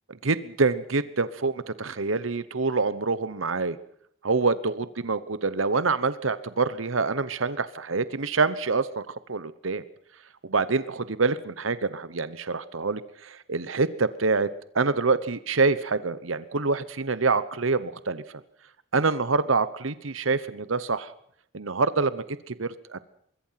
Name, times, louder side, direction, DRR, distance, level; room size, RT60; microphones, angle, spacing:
voice 1, 0.1-3.8 4.2-9.8 10.4-14.5 14.7-18.2 18.9-21.1 21.5-23.0, right 4 dB, 90° right, 15 dB, 1.1 m, -26 dB
25.0 x 22.5 x 5.9 m, 0.67 s
head